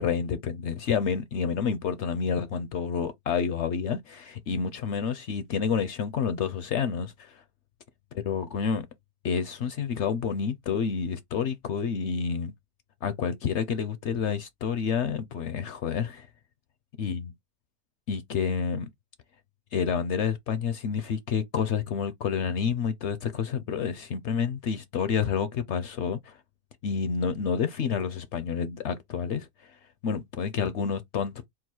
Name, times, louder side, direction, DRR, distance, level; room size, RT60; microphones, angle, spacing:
voice 1, 0.0-7.4 8.2-8.9 9.2-12.5 13.0-16.3 17.0-17.2 18.1-18.9 19.7-26.4 26.8-29.8 30.0-31.5, left 6 dB, 65° left, 0.7 m, -29 dB
3.9 x 2.3 x 4.3 m
omnidirectional pair, 1.6 m